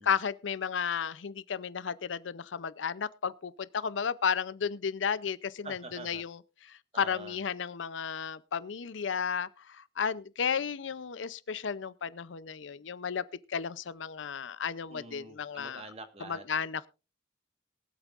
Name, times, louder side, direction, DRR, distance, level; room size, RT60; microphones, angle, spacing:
voice 1, 0.0-13.2 13.5-15.8 16.2-16.9, left 6 dB, 80° left, 0.6 m, -33 dB
voice 2, 5.6-6.2 6.9-7.4 14.9-16.4, right 2 dB, 35° right, 1.4 m, -46 dB
22.5 x 8.2 x 2.5 m
head